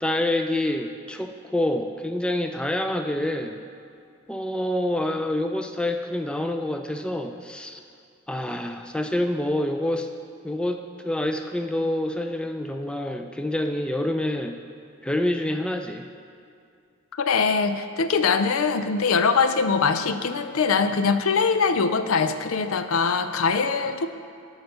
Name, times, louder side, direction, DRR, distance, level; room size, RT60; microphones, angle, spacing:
voice 1, 0.0-3.6 4.3-7.8 8.3-10.1 10.4-14.6 15.0-16.0, left 1 dB, 5° left, 5 dB, 0.4 m, -27 dB
voice 2, 17.1-24.1, left 5 dB, 85° left, 10 dB, 0.5 m, -22 dB
11.5 x 4.0 x 6.6 m, 2.4 s
head